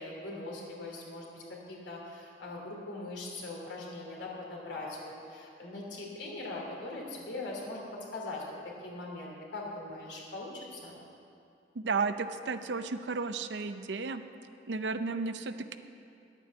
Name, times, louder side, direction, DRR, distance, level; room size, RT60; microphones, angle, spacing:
voice 1, 0.0-8.4 8.8-11.0, left 2 dB, 85° left, -2 dB, 2.9 m, -41 dB
voice 2, 11.7-14.2 14.7-15.8, right 4 dB, 80° right, 10 dB, 0.6 m, -33 dB
11.0 x 9.1 x 7.0 m, 2.5 s
head